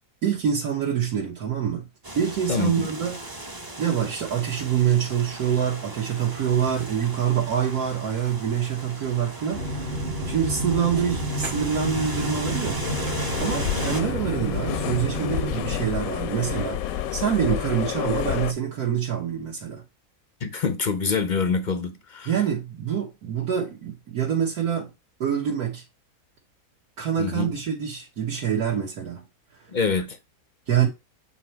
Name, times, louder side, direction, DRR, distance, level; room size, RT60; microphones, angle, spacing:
voice 1, 0.2-1.9 2.2-3.2 3.8-12.9 13.4-16.8 17.1-19.8 22.3-24.9 25.2-25.8 27.0-29.3 30.7-30.9, right 8 dB, 70° right, 1.8 m, -26 dB
sound 1, 2.0-14.0, right 1 dB, 20° right, 0.7 m, -37 dB
voice 2, 2.5-2.9 13.4-13.5 20.4-22.3 27.2-27.5 29.7-30.2, left 5 dB, 50° left, 0.5 m, -26 dB
sound 2, 9.5-15.6, equal, 40° right, 1.1 m, -30 dB
sound 3, 12.8-18.5, left 11 dB, 70° left, 1.0 m, -30 dB
8.3 x 2.9 x 4.5 m
omnidirectional pair, 1.7 m